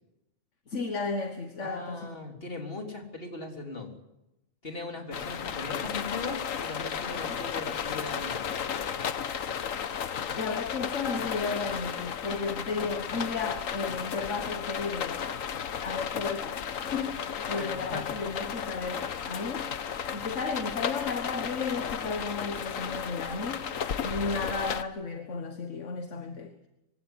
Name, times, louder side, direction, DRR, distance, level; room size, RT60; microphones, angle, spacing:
voice 1, 0.7-2.2 7.3-7.4 10.3-15.2 15.8-19.7 20.1-23.7 24.0-26.5, left 4 dB, 65° left, 7 dB, 1.8 m, -34 dB
voice 2, 1.6-3.9 4.6-8.5 17.5-18.1, left 3 dB, 45° left, 2 dB, 4.0 m, -39 dB
sound 1, 5.1-24.8, left 7 dB, 85° left, 1.4 m, -34 dB
24.0 x 16.5 x 9.9 m, 0.92 s
omnidirectional pair, 1.4 m